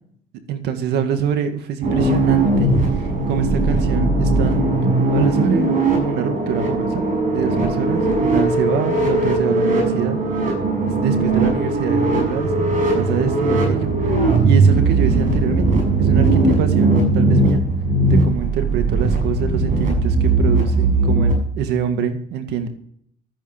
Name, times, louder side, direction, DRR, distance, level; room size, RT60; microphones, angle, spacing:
voice 1, 0.5-4.8 5.1-10.2 10.8-14.1 14.4-15.7 16.0-17.6 18.1-22.7, right 7 dB, 80° right, 8 dB, 2.1 m, -25 dB
sound 1, 1.8-21.3, right 2 dB, 50° right, 6.6 m, -18 dB
13.0 x 10.0 x 6.7 m, 0.65 s
cardioid pair, 110°, 17 cm